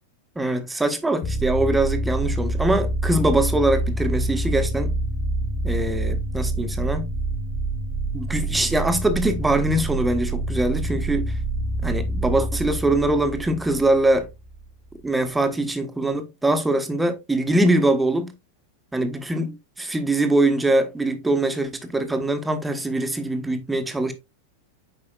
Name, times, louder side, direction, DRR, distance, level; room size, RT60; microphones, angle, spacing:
voice 1, 0.3-4.9 5.6-7.1 8.1-11.3 11.8-14.3 15.0-18.3 18.9-24.1, right 1 dB, 5° right, 1.2 m, -23 dB
sound 1, 1.2-14.6, right 1 dB, 30° left, 2.8 m, -26 dB
8.6 x 5.4 x 2.4 m
figure-of-eight pair, 90°, 0 cm